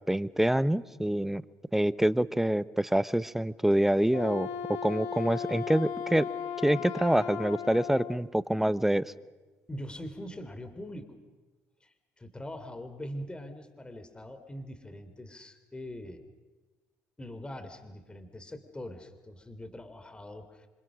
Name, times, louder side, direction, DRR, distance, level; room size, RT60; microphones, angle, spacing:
voice 1, 0.1-1.4 1.7-4.5 4.8-6.3 6.6-9.0, right 1 dB, 5° right, 16 dB, 0.9 m, -26 dB
Wind instrument woodwind instrument, 4.0-8.2, left 8 dB, 80° left, 2.0 m, -36 dB
voice 2, 9.7-11.2 11.8-16.2 17.2-20.7, left 1 dB, 15° left, 9 dB, 3.6 m, -42 dB
27.0 x 26.0 x 6.4 m, 1.2 s
supercardioid pair, 80°, 6 cm